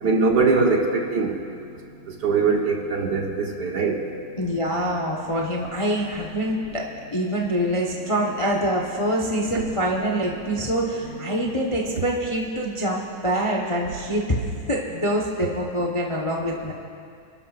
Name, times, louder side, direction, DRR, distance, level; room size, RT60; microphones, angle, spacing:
voice 1, 0.0-1.3 2.2-3.9, right 4 dB, 55° right, 1 dB, 1.6 m, -21 dB
voice 2, 4.4-14.4 14.7-16.7, equal, 25° left, -1 dB, 0.8 m, -25 dB
28.5 x 12.5 x 2.5 m, 2.3 s
omnidirectional pair, 2.3 m